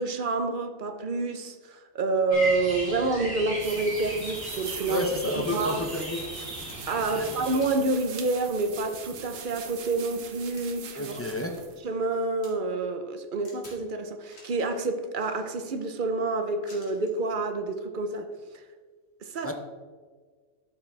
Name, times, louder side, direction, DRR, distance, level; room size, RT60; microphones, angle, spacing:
voice 1, 0.0-5.9 6.9-11.2 11.8-18.3 19.2-19.5, right 3 dB, 50° right, 0.7 m, -28 dB
sound 1, 2.3-7.6, equal, 15° right, 2.9 m, -37 dB
sound 2, 3.6-11.8, right 7 dB, 85° right, 1.2 m, -42 dB
voice 2, 4.9-6.2 7.1-7.3 10.9-11.6 19.4-19.5, left 2 dB, 20° left, 0.4 m, -30 dB
sound 3, 6.7-7.1 7.6-8.1 8.5-8.6 9.0-11.4 11.7-12.5 13.4-13.8 14.2-14.6 15.1-15.8 16.7-17.2 18.3-18.4, left 1 dB, 55° left, 2.3 m, -53 dB
12.0 x 6.0 x 3.3 m
omnidirectional pair, 1.3 m